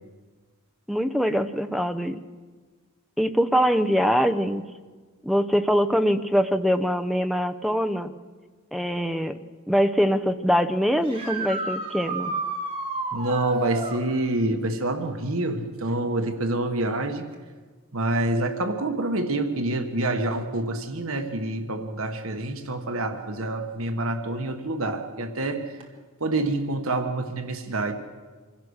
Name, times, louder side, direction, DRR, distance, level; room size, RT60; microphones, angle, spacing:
voice 1, 0.9-2.2 3.2-4.6 5.2-8.1 8.7-9.4 9.7-12.3, equal, ahead, 9 dB, 0.7 m, -23 dB
sound 1, 11.0-14.0 17.3-17.4 19.5-19.6 25.8-25.9, right 3 dB, 25° right, 2.5 m, -31 dB
voice 2, 13.1-17.3 17.9-25.8 26.2-27.9, right 2 dB, 65° right, 6 dB, 1.4 m, -27 dB
25.0 x 16.5 x 6.5 m, 1.4 s
head